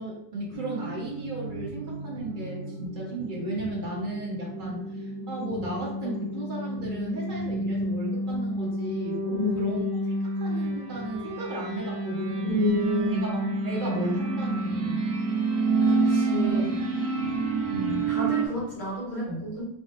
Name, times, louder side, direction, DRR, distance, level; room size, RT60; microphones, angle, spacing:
voice 1, 0.0-10.0 10.3-12.6 13.1-15.1 16.3-17.4 17.7-18.1 19.3-19.4, right 1 dB, 40° right, -4 dB, 0.7 m, -35 dB
sound 1, 0.5-18.5, right 3 dB, 65° right, 1.1 m, -29 dB
voice 2, 9.3-9.8 12.4-13.3 15.8-16.7 18.1-19.6, left 2 dB, 35° left, -9 dB, 1.8 m, -30 dB
3.6 x 3.5 x 2.4 m, 0.74 s
omnidirectional pair, 2.0 m